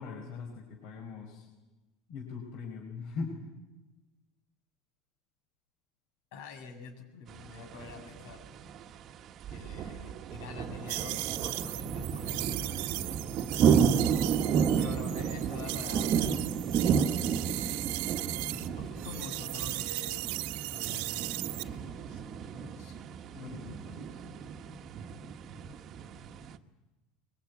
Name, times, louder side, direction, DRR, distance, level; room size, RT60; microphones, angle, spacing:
voice 1, 0.0-1.5 2.1-3.4 18.6-19.1 23.3-24.2, left 4 dB, 60° left, 1 dB, 5.3 m, -41 dB
voice 2, 6.3-8.4 9.5-13.2 14.2-14.5 14.7-17.1 17.4-17.8 18.3-20.2 20.7-23.0, left 4 dB, 75° left, 4 dB, 7.3 m, -47 dB
sound 1, 7.3-26.6, right 7 dB, 35° right, 1.3 m, -32 dB
sound 2, 10.9-18.7 19.0-21.6, right 19 dB, 70° right, 1.3 m, -37 dB
23.5 x 22.0 x 9.6 m, 1.1 s
supercardioid pair, 145°, 0 cm